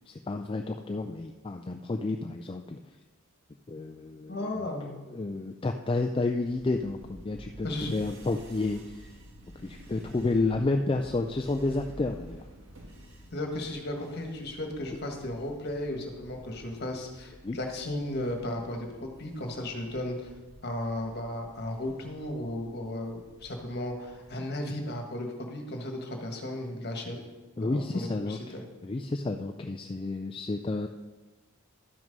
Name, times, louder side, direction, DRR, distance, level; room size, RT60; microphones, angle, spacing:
voice 1, 0.1-2.8 3.7-4.7 5.1-9.1 9.6-12.4 17.4-17.6 27.6-28.6 28.8-30.9, left 2 dB, 25° left, 4 dB, 0.3 m, -31 dB
voice 2, 4.3-5.0 7.6-7.9 13.3-20.3 20.6-27.2 27.6-28.6, left 1 dB, 45° left, 3 dB, 1.5 m, -35 dB
sound 1, 6.5-24.3, right 1 dB, 55° right, 1.6 m, -51 dB
12.0 x 6.1 x 5.3 m, 1.2 s
head